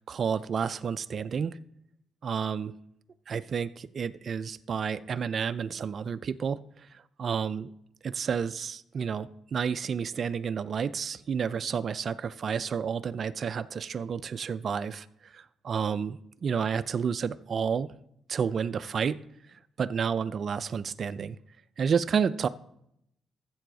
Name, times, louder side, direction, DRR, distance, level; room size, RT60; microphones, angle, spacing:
voice 1, 0.0-1.6 2.2-2.7 3.3-7.7 8.0-17.9 18.3-19.2 19.5-21.4 21.8-22.5, right 6 dB, 50° right, 13 dB, 0.4 m, -30 dB
13.5 x 7.7 x 3.9 m, 0.76 s
cardioid pair, 90°, 0 cm